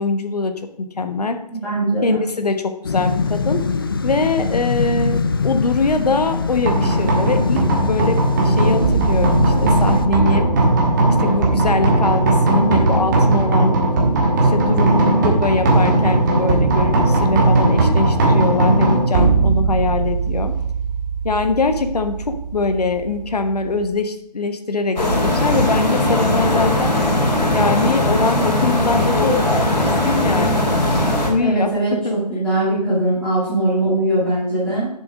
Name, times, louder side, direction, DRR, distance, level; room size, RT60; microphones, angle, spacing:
voice 1, 0.0-1.4 2.0-3.6 4.0-10.5 11.2-13.8 14.4-20.5 21.2-26.9 27.5-29.3 29.8-30.7 31.2-31.7 32.0-32.4, left 3 dB, 70° left, 8 dB, 1.2 m, -22 dB
voice 2, 1.5-2.2 31.4-34.9, right 1 dB, 5° left, -12 dB, 2.6 m, -20 dB
sound 1, 2.8-10.1, left 4 dB, 35° left, 0.4 m, -22 dB
sound 2, 6.7-23.9, right 2 dB, 30° right, 1.6 m, -18 dB
sound 3, 25.0-31.3, left 1 dB, 90° left, 3.2 m, -18 dB
7.1 x 6.7 x 5.1 m, 0.80 s
figure-of-eight pair, 155°, 21 cm